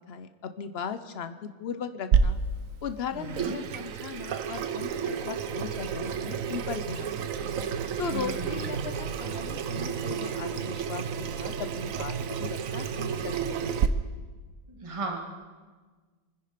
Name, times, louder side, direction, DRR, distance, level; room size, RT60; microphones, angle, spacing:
voice 1, 0.1-2.4 2.8-7.3 8.0-13.7, left 7 dB, 70° left, 10 dB, 0.5 m, -38 dB
Water tap faucet / Sink (filling or washing), 2.1-13.9, right 7 dB, 60° right, 0.9 m, -30 dB
voice 2, 3.1-3.7 8.1-8.9 14.7-15.2, right 3 dB, 15° right, 1 dB, 1.9 m, -36 dB
26.0 x 10.5 x 5.1 m, 1.4 s
omnidirectional pair, 2.0 m